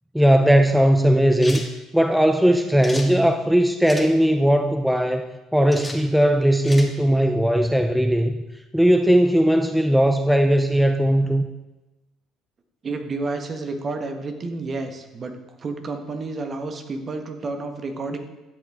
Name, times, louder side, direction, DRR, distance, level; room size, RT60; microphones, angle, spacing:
voice 1, 0.1-1.7 1.9-8.4 8.7-11.5, equal, 5° right, 6 dB, 0.6 m, -18 dB
sound 1, 1.4-1.7 2.8-3.1 3.8-4.1 5.7-6.0 6.6-6.9, left 2 dB, 15° left, 1.8 m, -34 dB
voice 2, 12.8-18.2, right 3 dB, 40° right, 5 dB, 1.4 m, -30 dB
12.5 x 8.2 x 3.7 m, 1.1 s
hypercardioid pair, 55°, 0 cm